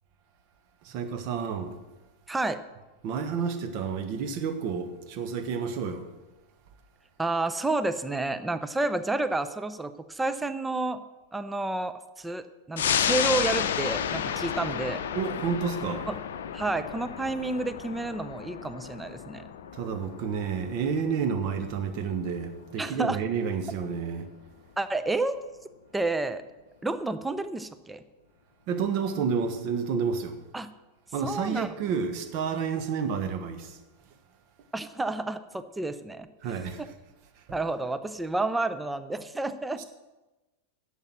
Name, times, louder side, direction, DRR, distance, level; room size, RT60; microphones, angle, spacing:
voice 1, 0.8-1.7 3.0-6.1 15.1-16.1 19.7-24.3 28.7-30.4 31.1-33.8 36.4-36.9 37.4-37.5 39.8-39.9, right 6 dB, 45° right, 8 dB, 1.2 m, -30 dB
voice 2, 2.3-2.6 7.2-11.0 11.3-15.0 16.1-16.2 16.5-19.5 22.8-23.2 24.8-25.4 25.9-26.4 26.8-28.0 30.5-30.7 31.2-31.7 34.7-36.3 37.5-39.8, right 2 dB, 10° right, 12 dB, 0.6 m, -30 dB
sound 1, 12.8-23.7 24.1-24.2, left 8 dB, 60° left, 0.6 m, -32 dB
10.5 x 7.3 x 6.2 m, 1.1 s
figure-of-eight pair, 90°, 0 cm